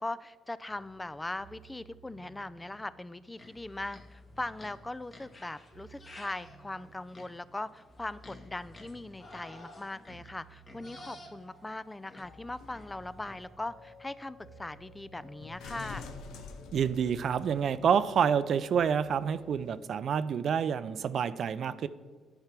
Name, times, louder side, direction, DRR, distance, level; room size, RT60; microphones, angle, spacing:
voice 1, 0.0-16.1, left 2 dB, 15° left, 16 dB, 0.3 m, -40 dB
sound 1, 0.6-19.5, right 1 dB, 65° left, 2.8 m, -56 dB
sound 2, 3.4-4.1 4.6-13.4, left 2 dB, 35° left, 1.7 m, -52 dB
sound 3, 12.4-17.8 18.6-18.7, left 5 dB, 85° left, 0.9 m, -49 dB
voice 2, 16.7-21.9, right 7 dB, 60° right, 14 dB, 0.4 m, -28 dB
10.5 x 4.9 x 5.9 m, 1.5 s
cardioid pair, 90°, 0 cm